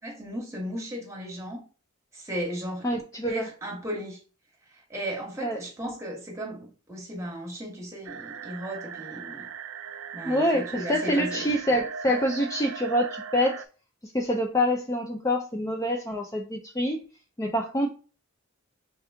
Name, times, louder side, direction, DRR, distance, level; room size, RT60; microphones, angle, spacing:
voice 1, 0.0-1.6 2.1-2.9 3.3-4.2 4.7-9.5 10.1-11.5, equal, 15° right, 1.3 m, -35 dB
voice 2, 2.8-3.5 5.4-5.6 10.2-13.6 14.1-17.0 17.4-17.9, equal, 15° left, 0.4 m, -26 dB
sound 1, 8.0-13.6, right 5 dB, 70° right, 0.3 m, -38 dB
3.3 x 3.0 x 3.4 m
head